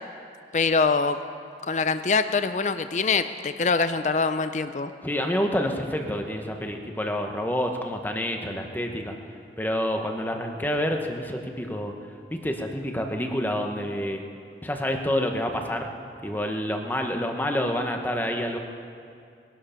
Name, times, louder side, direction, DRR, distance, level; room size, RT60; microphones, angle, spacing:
voice 1, 0.5-1.2 1.7-4.9, left 4 dB, 40° left, 11 dB, 0.5 m, -24 dB
voice 2, 5.0-9.2 9.6-11.9 12.4-14.2 14.6-15.9 16.2-18.6, equal, 10° left, 3 dB, 1.1 m, -28 dB
20.5 x 12.0 x 5.8 m, 2.4 s
head